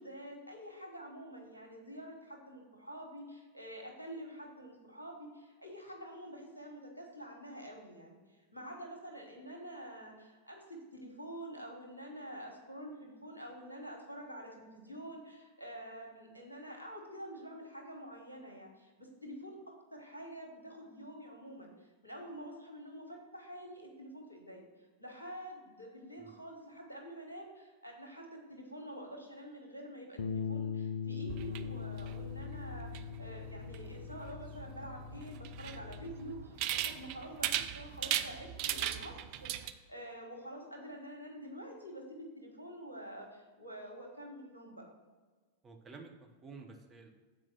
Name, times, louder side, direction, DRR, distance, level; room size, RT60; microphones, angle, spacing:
voice 1, 0.0-8.2 8.5-19.6 19.9-39.1 39.4-44.8, equal, 85° left, 1 dB, 1.5 m, -47 dB
Bass guitar, 30.2-36.4, left 7 dB, 65° left, 0.5 m, -41 dB
sound 1, 31.3-39.7, right 12 dB, 45° right, 0.4 m, -39 dB
voice 2, 45.6-47.1, right 4 dB, 20° right, 2 dB, 1.1 m, -51 dB
7.8 x 4.7 x 5.9 m, 1.4 s
figure-of-eight pair, 90°, 0 cm